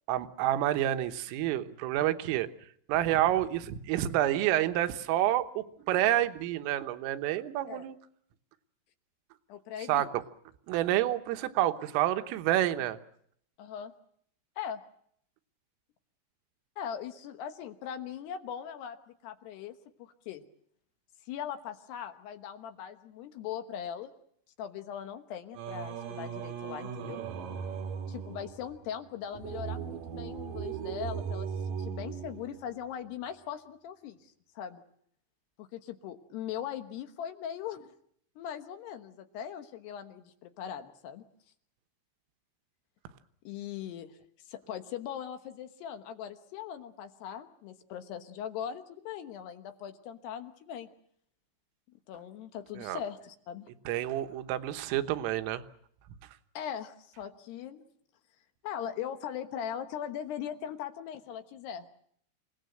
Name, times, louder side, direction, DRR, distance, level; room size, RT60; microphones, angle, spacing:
voice 1, 0.1-2.5 2.9-8.0 9.9-10.1 10.7-13.0 52.8-53.0 53.9-55.6, right 13 dB, 85° right, 9 dB, 3.7 m, -28 dB
voice 2, 9.5-10.1 13.6-13.9 14.6-14.8 16.8-20.4 21.3-24.1 24.6-27.2 28.1-34.8 35.6-37.9 38.4-41.2 43.4-44.2 44.5-50.9 52.1-53.7 56.5-57.9 58.6-61.9, left 9 dB, 70° left, 8 dB, 2.9 m, -40 dB
Singing, 25.5-32.9, right 7 dB, 65° right, 2.3 m, -38 dB
28.5 x 18.0 x 7.9 m, 0.67 s
omnidirectional pair, 5.8 m